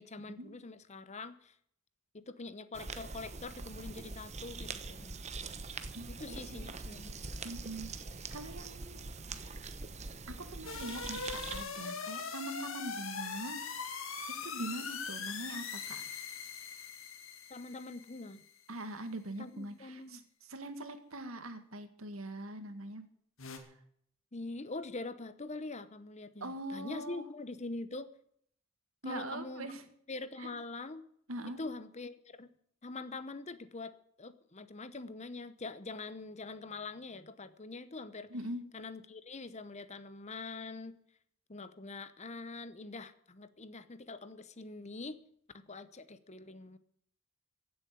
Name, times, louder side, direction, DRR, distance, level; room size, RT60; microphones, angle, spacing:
voice 1, 0.0-1.5 2.1-5.2 6.1-7.2 17.5-18.4 19.4-20.2 24.3-28.1 29.0-29.7 30.1-31.0 31.6-32.5 32.8-38.3 38.7-40.9 41.5-45.2 45.5-46.8, left 3 dB, 30° left, 13 dB, 0.9 m, -44 dB
sound 1, 2.7-11.6, right 4 dB, 30° right, 1.0 m, -43 dB
voice 2, 5.9-6.7 7.4-7.9 8.3-9.1 9.3-9.6 10.3-13.6 14.3-16.0 18.7-20.2 20.5-23.0 26.4-27.2 29.0-29.8 30.4-30.5 31.3-31.6 38.3-38.6, right 1 dB, 80° right, 8 dB, 2.0 m, -42 dB
sound 2, 10.6-18.5 23.4-23.6, left 5 dB, 70° left, 2.3 m, -41 dB
16.0 x 7.9 x 9.4 m, 0.67 s
head